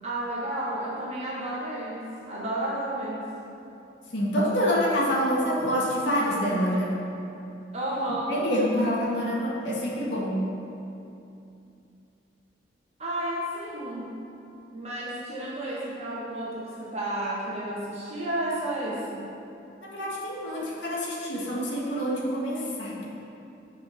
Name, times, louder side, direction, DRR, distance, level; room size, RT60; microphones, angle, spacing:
voice 1, 0.0-3.3 7.7-8.4 13.0-14.2 14.7-19.2, right 1 dB, 35° right, -6 dB, 1.5 m, -32 dB
voice 2, 4.1-6.9 8.3-10.4 19.8-23.1, equal, 70° left, -4 dB, 1.9 m, -26 dB
10.0 x 5.2 x 6.0 m, 2.7 s
head